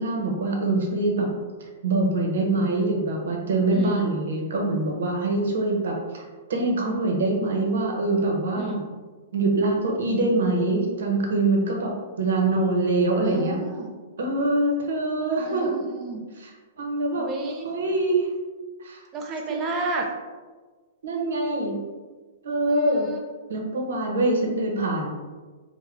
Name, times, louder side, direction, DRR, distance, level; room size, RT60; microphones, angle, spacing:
voice 1, 0.0-1.3 1.8-8.8 9.3-13.6 14.2-15.7 16.4-17.3 17.6-18.3 18.8-19.0 19.5-19.6 21.0-21.8 22.4-23.1 23.5-25.1, right 2 dB, 75° right, 1 dB, 0.8 m, -24 dB
voice 2, 3.7-4.2 8.5-8.9 13.2-13.9 15.4-16.2 17.2-17.7 19.1-20.1 22.7-23.2, right 3 dB, 20° right, 1 dB, 0.4 m, -32 dB
3.5 x 2.1 x 3.4 m, 1.4 s
hypercardioid pair, 160°, 0 cm